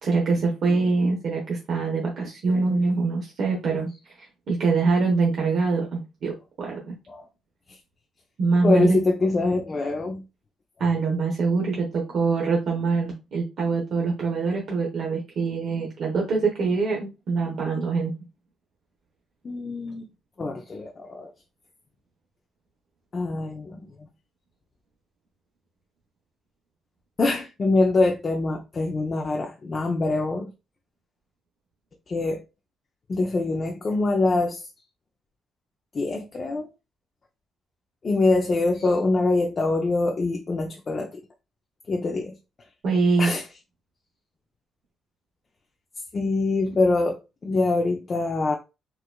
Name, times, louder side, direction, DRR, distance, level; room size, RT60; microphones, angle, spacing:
voice 1, 0.0-4.1 4.5-7.0 8.4-9.0 10.8-18.1 42.8-43.3, right 4 dB, 65° right, 0.8 m, -24 dB
voice 2, 8.6-10.2 19.4-20.0 20.4-21.3 23.1-23.8 27.2-30.5 32.1-32.4 33.1-34.6 35.9-36.7 38.0-41.2 41.9-42.3 43.2-43.4 46.1-48.6, left 3 dB, 40° left, 0.5 m, -24 dB
4.4 x 2.4 x 2.2 m
cardioid pair, 90°, 0 cm